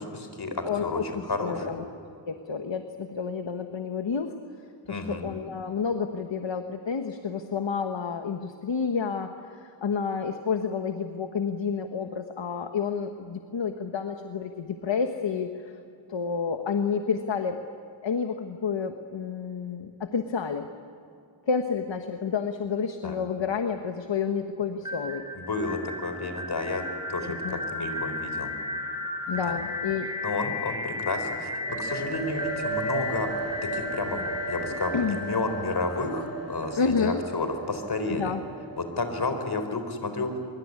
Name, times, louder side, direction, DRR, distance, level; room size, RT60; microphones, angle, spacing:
voice 1, 0.1-1.7 4.9-5.2 23.0-23.2 25.3-28.5 29.5-29.6 30.2-33.3 33.6-38.3 38.8-40.4, left 3 dB, 60° left, 7 dB, 4.1 m, -31 dB
voice 2, 0.6-1.1 1.4-1.8 2.3-4.4 4.9-15.5 16.1-17.6 18.0-20.7 21.5-25.2 27.2-27.6 29.3-30.1 34.9-35.2 36.8-37.2 38.1-38.4, left 6 dB, 75° left, 6 dB, 1.4 m, -30 dB
sound 1, 24.8-36.6, left 2 dB, 10° right, 6.6 m, -34 dB
sound 2, 31.6-39.3, right 4 dB, 75° right, 5.3 m, -36 dB
24.5 x 23.0 x 9.7 m, 2.6 s
wide cardioid pair, 85°, 44 cm